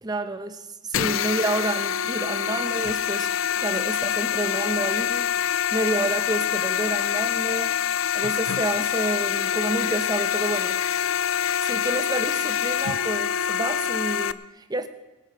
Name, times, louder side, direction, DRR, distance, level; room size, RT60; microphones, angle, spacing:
voice 1, 0.0-3.3 3.6-5.3 5.7-7.8 8.1-10.8 11.6-14.9, right 2 dB, 20° right, 9 dB, 0.9 m, -29 dB
sound 1, 0.9-14.3, left 9 dB, 70° left, 0.5 m, -25 dB
21.5 x 9.0 x 5.1 m, 1.0 s
head